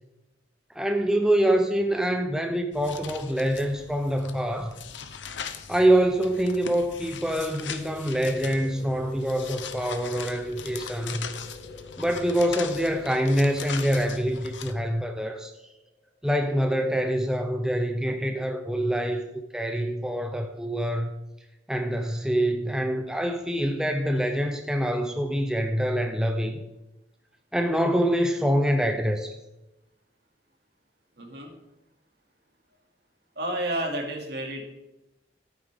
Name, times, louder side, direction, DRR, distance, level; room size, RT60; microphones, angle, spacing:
voice 1, 0.7-4.7 5.7-11.3 12.0-15.5 16.2-19.3 19.5-21.1 21.7-26.6 27.5-29.4, equal, 5° right, 4 dB, 0.6 m, -25 dB
sound 1, 2.7-14.7, left 7 dB, 85° left, 0.8 m, -40 dB
sound 2, 7.4-16.7, left 1 dB, 55° left, 4.2 m, -47 dB
voice 2, 31.2-31.5 33.4-34.6, right 1 dB, 65° right, 1 dB, 2.5 m, -30 dB
13.5 x 8.8 x 3.6 m, 0.96 s
head